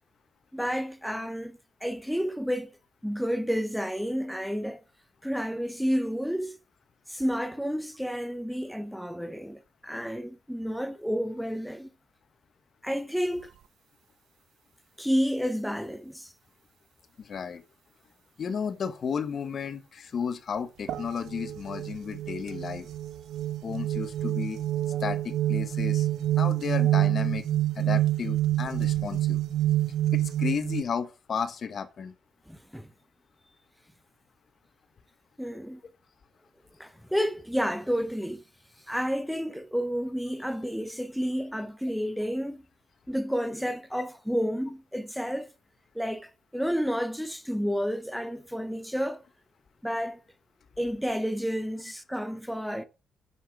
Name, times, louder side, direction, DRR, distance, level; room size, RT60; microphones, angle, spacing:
voice 1, 0.5-2.7 3.0-4.8 5.2-6.6 7.1-11.9 12.8-13.5 15.0-16.3 32.5-32.9 35.4-35.8 36.8-38.4 38.9-42.6 43.1-45.5 45.9-49.2 49.8-50.2 50.8-52.8, equal, ahead, 0.8 m, -30 dB
voice 2, 17.2-17.6 18.4-22.9 23.6-24.6 25.0-26.1 26.3-27.5 27.7-29.4 30.1-32.1, left 6 dB, 50° left, 1.2 m, -33 dB
sound 1, 20.9-30.8, right 14 dB, 75° right, 0.6 m, -27 dB
7.3 x 7.0 x 4.8 m
cardioid pair, 90°, 0 cm